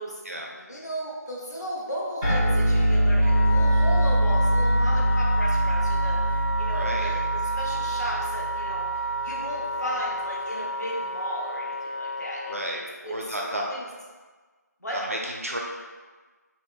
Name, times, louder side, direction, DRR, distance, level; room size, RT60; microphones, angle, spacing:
voice 1, 0.5-13.1 13.5-13.8 14.8-15.0, equal, 70° left, -5 dB, 0.7 m, -35 dB
sound 1, 2.2-9.0, equal, 20° left, 0.8 m, -23 dB
Wind instrument woodwind instrument, 3.2-12.5, right 1 dB, 40° left, 0.3 m, -31 dB
voice 2, 6.7-7.1 12.5-13.6 14.9-15.6, right 1 dB, 50° right, -1 dB, 0.4 m, -32 dB
2.9 x 2.0 x 2.2 m, 1.4 s
figure-of-eight pair, 180°, 10 cm